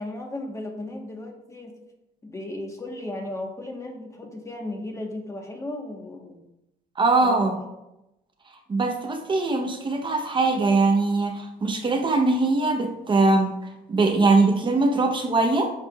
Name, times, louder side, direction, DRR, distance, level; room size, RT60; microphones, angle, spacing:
voice 1, 0.0-1.8 2.2-6.4 7.2-7.4, left 1 dB, 15° left, 2 dB, 1.3 m, -35 dB
voice 2, 7.0-7.6 8.7-13.5 13.9-15.7, right 3 dB, 30° right, 3 dB, 0.9 m, -21 dB
9.4 x 6.6 x 2.4 m, 0.90 s
cardioid pair, 110°, 17 cm